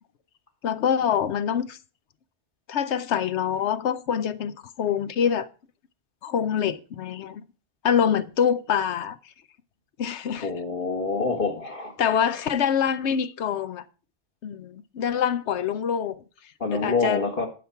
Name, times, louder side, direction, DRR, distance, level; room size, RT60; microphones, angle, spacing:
voice 1, 0.6-1.8 2.7-5.5 6.2-7.4 7.8-9.2 10.0-10.5 12.0-13.9 14.4-16.2 16.7-17.3, left 8 dB, 85° left, 1.0 m, -25 dB
voice 2, 10.4-12.1 16.6-17.5, left 3 dB, 55° left, 1.7 m, -26 dB
11.5 x 5.9 x 5.7 m
omnidirectional pair, 1.1 m